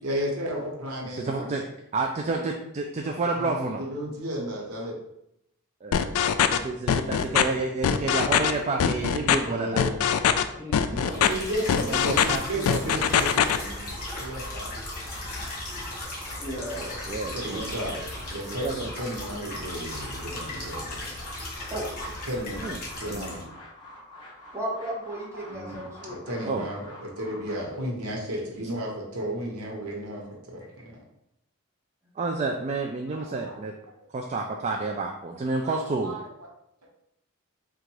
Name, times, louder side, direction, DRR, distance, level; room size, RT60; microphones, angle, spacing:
voice 1, 0.0-1.4 3.0-5.0 9.4-10.0 10.9-14.7 16.1-16.8 17.3-21.2 22.3-23.5 25.5-30.9 33.1-33.6 35.6-36.5, equal, 85° right, -1 dB, 1.1 m, -34 dB
voice 2, 1.1-1.7 1.9-3.8 5.8-6.1 6.5-9.9 11.9-13.1 16.7-17.6 17.9-18.0 18.6-18.9 22.6-23.3 26.4-26.7 32.2-33.7 34.1-36.2, right 3 dB, 30° right, 2 dB, 0.3 m, -30 dB
sound 1, 5.9-6.6 6.9-7.4 7.8-8.5 8.8-9.4 9.8-10.4 10.7-11.3 11.7-12.4 12.7-13.6, left 8 dB, 70° left, 0.3 m, -21 dB
sound 2, 9.3-10.1 10.6-12.0 12.3-27.6, left 1 dB, 20° left, 1.1 m, -47 dB
voice 3, 10.6-11.2 16.4-17.0 21.7-21.9 24.5-26.2 30.6-30.7, right 1 dB, 15° right, -5 dB, 1.2 m, -35 dB
sound 3, 11.0-23.4, left 1 dB, 45° left, 1.4 m, -37 dB
3.8 x 2.4 x 4.6 m, 0.81 s
head